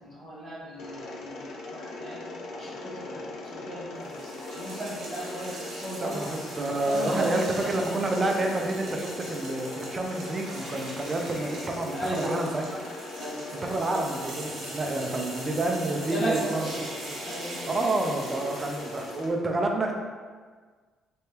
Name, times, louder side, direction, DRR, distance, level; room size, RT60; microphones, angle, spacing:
voice 1, 0.0-2.2 2.5-4.2 4.4-6.2 6.8-7.3 11.9-12.4 13.2-13.4 16.1-16.3 17.2-17.6, right 1 dB, 40° left, -14 dB, 1.3 m, -36 dB
Mechanisms, 0.8-19.3, left 2 dB, 60° left, 0.4 m, -40 dB
sound 1, 4.0-19.3, right 2 dB, 65° right, 1.2 m, -42 dB
voice 2, 6.0-12.8 13.5-17.2 17.7-19.9, right 2 dB, 20° right, 1 dB, 0.4 m, -29 dB
3.4 x 3.3 x 2.9 m, 1.5 s
cardioid pair, 175°, 0 cm